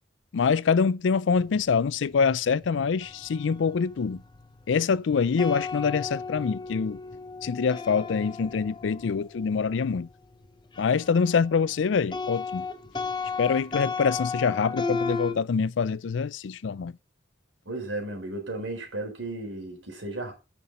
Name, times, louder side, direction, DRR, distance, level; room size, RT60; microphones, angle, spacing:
voice 1, 0.3-4.2 4.7-7.0 7.4-10.1 10.8-12.7 13.4-16.9, left 5 dB, 80° left, 0.4 m, -25 dB
sound 1, 1.4-11.5 11.8-15.3, left 4 dB, 25° left, 0.7 m, -35 dB
voice 2, 17.7-20.3, right 2 dB, 90° right, 4.0 m, -34 dB
9.6 x 6.0 x 4.9 m
head